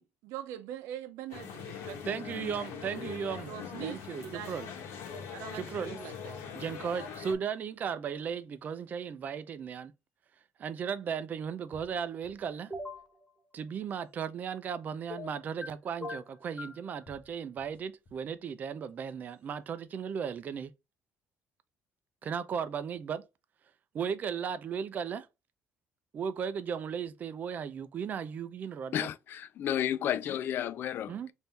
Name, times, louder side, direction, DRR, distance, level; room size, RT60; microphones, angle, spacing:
voice 1, 0.0-2.2 2.8-3.0 3.5-4.6 5.3-6.4, right 11 dB, 90° right, 0.7 m, -43 dB
sound 1, 1.3-7.3, left 7 dB, 80° left, 1.0 m, -42 dB
voice 2, 1.9-3.5 3.8-4.7 5.5-6.0 6.5-9.9 10.6-12.7 13.5-20.7 22.2-23.2 23.9-25.3 26.1-29.0 31.1-31.3, right 7 dB, 40° right, 0.5 m, -36 dB
sound 2, 9.7-9.8 11.1-11.2 11.7-13.0 13.6-14.1 15.1-15.2 16.4-16.5 17.1-18.4 18.9-19.4, left 1 dB, 30° left, 1.0 m, -60 dB
sound 3, 12.7-13.1 15.1-15.7 16.0-16.8, left 2 dB, 5° left, 0.7 m, -40 dB
voice 3, 28.9-31.3, left 10 dB, 55° left, 0.4 m, -32 dB
3.5 x 2.7 x 4.2 m
cardioid pair, 135°, 4 cm